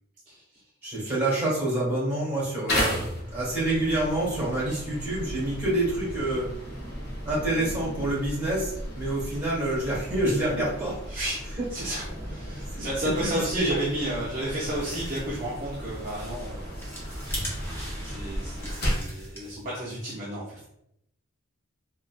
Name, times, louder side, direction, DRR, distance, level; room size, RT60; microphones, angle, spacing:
voice 1, 0.3-0.6 11.1-11.4 11.7-16.8 18.0-20.6, right 1 dB, 35° right, -7 dB, 0.5 m, -32 dB
voice 2, 0.8-6.5 7.2-11.0 11.6-11.7 12.7-12.9 13.2-13.8 14.6-14.7, right 1 dB, 10° right, -8 dB, 1.3 m, -27 dB
sound 1, 2.7-19.2, equal, 50° left, 0.8 m, -35 dB
sound 2, 14.2-19.7, equal, 10° left, 0.6 m, -39 dB
3.7 x 2.2 x 2.4 m, 0.79 s
head